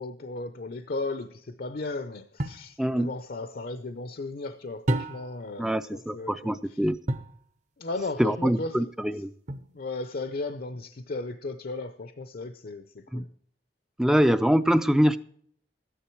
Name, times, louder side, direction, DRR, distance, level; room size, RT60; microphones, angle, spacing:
voice 1, 0.0-6.6 7.8-8.9 9.7-13.3, left 3 dB, 55° left, 0.6 m, -35 dB
sound 1, 2.4-2.7 4.9-5.5 7.1-7.4 9.5-10.0, right 1 dB, 45° right, 0.8 m, -30 dB
voice 2, 2.8-3.1 5.6-7.0 8.2-9.3 13.1-13.2 14.0-15.2, equal, 5° right, 0.4 m, -24 dB
13.5 x 10.0 x 4.5 m
head